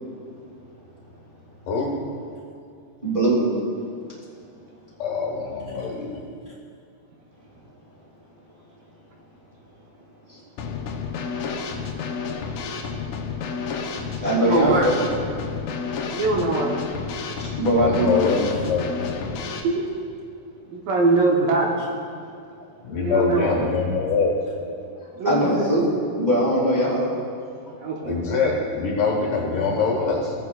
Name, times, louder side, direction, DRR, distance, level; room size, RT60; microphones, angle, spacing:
voice 1, 3.0-3.5 10.3-10.4 11.8-11.9 14.2-15.0 17.4-18.4 22.5-22.6 24.9-27.1, right 1 dB, 20° right, -8 dB, 1.5 m, -22 dB
voice 2, 5.0-6.2 17.7-19.1 22.8-24.4 28.0-30.3, left 4 dB, 65° left, -1 dB, 2.5 m, -24 dB
Drum kit / Snare drum, 10.6-19.6, left 5 dB, 80° left, 1.8 m, -30 dB
voice 3, 14.4-14.9 16.1-16.8 19.4-19.9 20.7-21.9 22.9-23.6 25.2-25.7 27.8-28.2, right 3 dB, 70° right, -2 dB, 2.4 m, -23 dB
17.0 x 9.4 x 2.3 m, 2.4 s
omnidirectional pair, 4.6 m